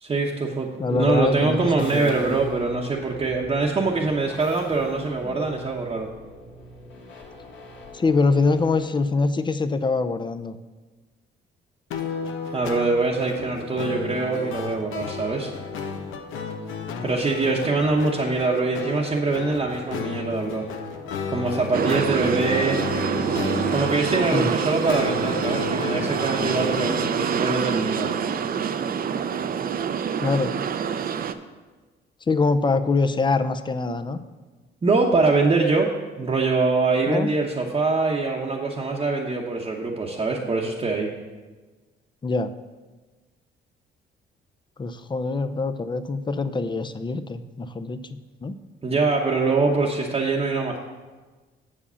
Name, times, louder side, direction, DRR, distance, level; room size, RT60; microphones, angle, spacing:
voice 1, 0.0-6.1 12.5-15.5 17.0-20.7 21.3-22.8 23.7-28.1 34.8-35.9 36.2-41.1 48.8-50.8, right 3 dB, 30° right, -2 dB, 0.9 m, -23 dB
voice 2, 0.8-2.4 5.2-5.4 7.9-10.6 24.3-24.5 30.2-30.5 32.3-34.2 37.1-37.3 42.2-42.5 44.8-48.5, left 3 dB, 25° left, 11 dB, 0.5 m, -24 dB
sound 1, 0.9-8.9, equal, 75° left, 2.0 m, -42 dB
sound 2, 11.9-27.1, left 5 dB, 90° left, 0.8 m, -32 dB
sound 3, 21.7-31.3, right 7 dB, 50° right, 0.5 m, -26 dB
7.1 x 4.9 x 6.8 m, 1.3 s
cardioid pair, 90°, 20 cm